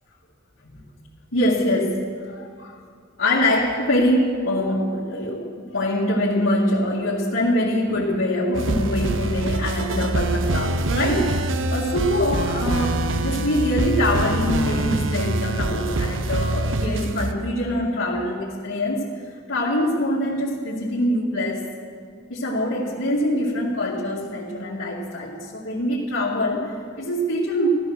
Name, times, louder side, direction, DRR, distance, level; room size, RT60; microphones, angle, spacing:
voice 1, 1.3-2.8 3.2-19.1 19.5-21.6 22.3-27.7, left 1 dB, 90° left, -7 dB, 2.1 m, -24 dB
sound 1, 8.5-17.3, right 2 dB, 70° right, 0.8 m, -25 dB
16.0 x 12.5 x 6.3 m, 2.1 s
head